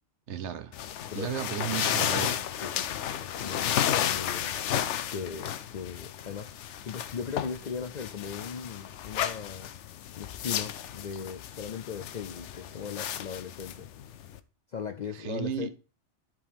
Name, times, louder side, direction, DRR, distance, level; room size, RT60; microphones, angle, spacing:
voice 1, 0.3-0.7 1.1-2.4 15.1-15.7, right 9 dB, 70° right, 1.0 m, -34 dB
sound 1, 0.7-14.4, left 10 dB, 80° left, 0.9 m, -33 dB
voice 2, 2.6-6.5 6.8-9.7 10.2-13.9 14.7-15.7, left 6 dB, 55° left, 0.5 m, -38 dB
13.5 x 4.6 x 3.5 m
omnidirectional pair, 1.2 m